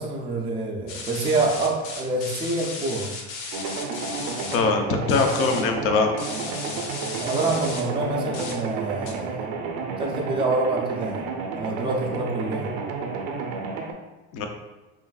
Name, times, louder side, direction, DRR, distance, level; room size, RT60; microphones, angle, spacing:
voice 1, 0.0-3.1 7.2-9.3 10.0-11.2 11.5-12.7, right 2 dB, 15° right, -1 dB, 0.4 m, -26 dB
sound 1, 0.9-4.6 5.1-5.6 6.2-7.8 8.3-8.5 9.1-9.2, left 4 dB, 65° left, 1.0 m, -35 dB
sound 2, 3.5-13.9, right 4 dB, 75° right, 0.6 m, -31 dB
voice 2, 4.5-6.1 14.3-14.5, left 4 dB, 45° left, 4 dB, 0.6 m, -22 dB
5.5 x 2.5 x 2.3 m, 1.1 s
cardioid pair, 150°, 32 cm